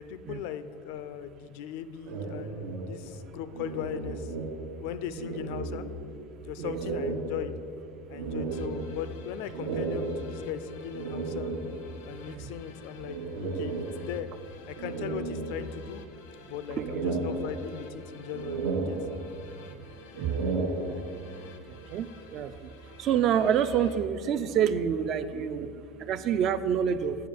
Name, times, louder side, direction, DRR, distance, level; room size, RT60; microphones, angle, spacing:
voice 1, 0.0-4.3 4.8-5.9 6.4-7.6 8.1-11.5 12.0-14.3 14.7-16.0 16.4-19.0, left 10 dB, 70° left, 13 dB, 0.4 m, -38 dB
sound 1, 2.0-4.9 5.1-6.2 6.6-12.1 13.0-14.3 14.8-16.1 16.5-18.0 18.3-19.6 20.0-21.4, right 3 dB, 85° right, 0.9 m, -34 dB
sound 2, 8.5-24.0, left 4 dB, 85° left, 0.9 m, -53 dB
voice 2, 16.8-17.1 19.7-19.8 20.2-20.4 21.9-22.5 23.0-25.7 26.1-27.2, right 8 dB, 40° right, 12 dB, 0.4 m, -27 dB
7.8 x 4.7 x 6.9 m, 2.4 s
supercardioid pair, 145°, 0 cm